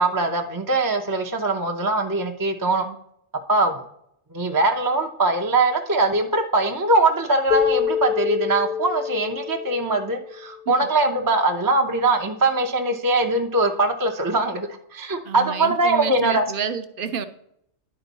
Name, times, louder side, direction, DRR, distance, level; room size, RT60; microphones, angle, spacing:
voice 1, 0.0-2.8 3.5-3.8 4.3-16.5, right 2 dB, 25° right, 3 dB, 0.4 m, -22 dB
Keyboard (musical), 7.5-10.7, left 8 dB, 60° left, 0.8 m, -26 dB
voice 2, 15.2-17.3, right 7 dB, 55° right, 10 dB, 0.7 m, -30 dB
11.0 x 4.5 x 4.0 m, 0.73 s
omnidirectional pair, 1.2 m